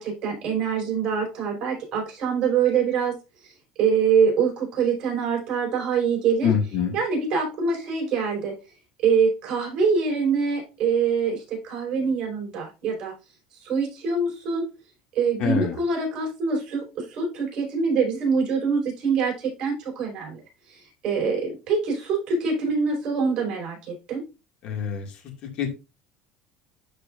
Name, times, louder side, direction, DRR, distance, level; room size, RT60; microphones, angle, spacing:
voice 1, 0.0-3.2 3.8-6.5 6.9-8.5 9.0-13.1 13.6-14.7 15.1-20.4 20.7-24.2, right 5 dB, 40° right, 0 dB, 4.9 m, -24 dB
voice 2, 6.4-7.0 15.4-15.8 24.6-25.2 25.6-25.7, left 7 dB, 50° left, 3 dB, 2.1 m, -25 dB
12.5 x 4.8 x 2.5 m, 0.27 s
cardioid pair, 155°, 2 cm